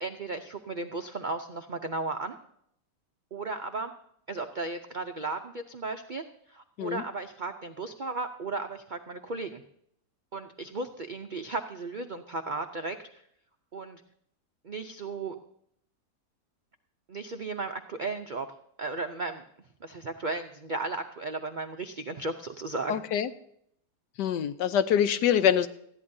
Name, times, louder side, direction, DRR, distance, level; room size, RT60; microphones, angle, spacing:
voice 1, 0.0-2.4 3.3-3.9 4.3-6.2 6.5-9.6 10.3-13.2 13.7-14.0 14.6-15.3 17.1-18.5 18.8-19.4 19.8-23.0, right 3 dB, 65° right, 5 dB, 0.4 m, -35 dB
voice 2, 22.9-23.3 24.2-25.7, left 9 dB, 80° left, 12 dB, 1.3 m, -25 dB
19.5 x 14.0 x 2.7 m, 0.71 s
omnidirectional pair, 1.8 m